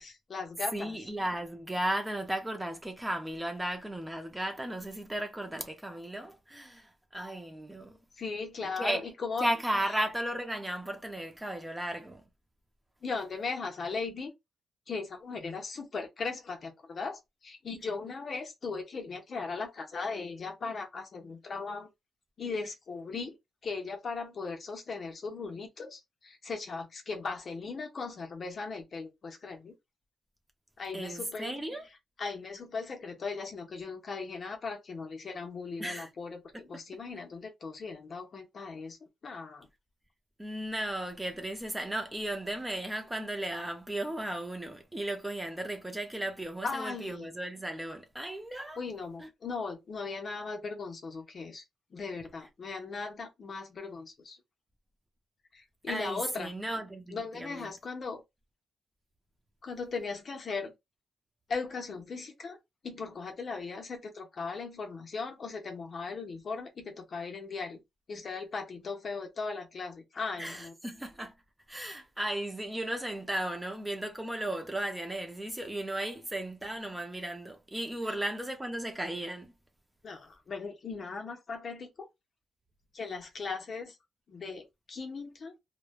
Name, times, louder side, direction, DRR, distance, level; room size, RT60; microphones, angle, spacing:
voice 1, 0.0-1.0 8.2-9.5 13.0-14.3 14.9-21.9 22.4-23.4 23.6-29.7 30.8-31.6 32.2-39.0 39.2-39.7 46.6-47.3 48.8-51.6 51.9-54.4 55.5-56.5 57.1-58.2 59.6-60.7 61.5-62.6 62.8-67.8 68.1-70.7 78.1-78.2 80.0-82.1 82.9-84.0 84.3-85.5, left 4 dB, 45° left, 0.7 m, -38 dB
voice 2, 0.7-8.0 8.8-9.0 9.4-12.2 30.9-31.8 35.8-36.1 40.4-48.8 49.2-49.3 55.9-57.7 70.4-71.3 71.7-79.5, right 1 dB, 10° right, 0.5 m, -35 dB
3.0 x 2.1 x 2.3 m
cardioid pair, 120°, 0 cm